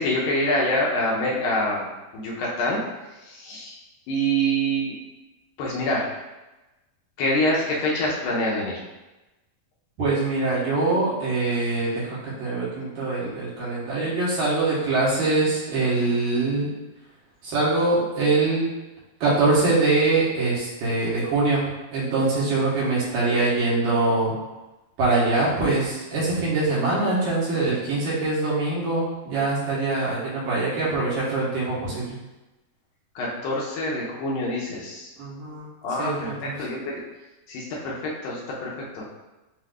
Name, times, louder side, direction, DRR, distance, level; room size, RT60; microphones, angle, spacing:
voice 1, 0.0-1.9 2.1-2.8 3.2-3.8 4.1-4.9 5.6-6.1 7.2-8.8 33.2-35.1 35.8-37.0 37.5-39.0, equal, 75° left, -4 dB, 2.4 m, -26 dB
voice 2, 10.0-16.7 17.4-18.7 19.2-21.6 21.9-24.3 25.0-32.2 35.2-35.7 36.0-36.2 36.4-36.5, right 3 dB, 70° right, -7 dB, 2.6 m, -23 dB
7.6 x 2.8 x 2.4 m, 1.1 s
omnidirectional pair, 4.3 m